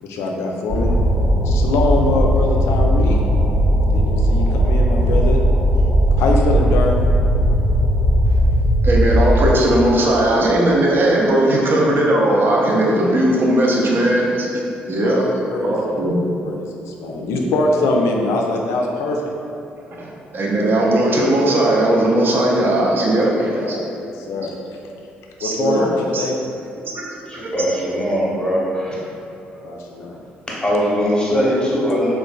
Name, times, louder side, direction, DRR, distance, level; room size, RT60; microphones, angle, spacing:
voice 1, 0.0-1.0 1.4-3.2 3.9-5.4 6.2-7.0 15.0-15.7 16.4-19.3 23.6-24.5 25.4-26.4 29.6-30.2, left 2 dB, 60° left, 1 dB, 0.3 m, -23 dB
sound 1, 0.7-9.5, equal, 85° right, 0.8 m, -17 dB
voice 2, 8.8-14.5 14.9-15.2 15.6-16.3 17.2-17.7 20.0-23.8 25.4-25.9 26.1-26.2 26.9-27.0 27.4-27.5, right 1 dB, 40° right, -3 dB, 0.5 m, -18 dB
voice 3, 27.3-29.0 30.5-32.1, equal, 15° left, -6 dB, 0.9 m, -20 dB
3.9 x 2.1 x 2.2 m, 2.7 s
figure-of-eight pair, 45°, 5 cm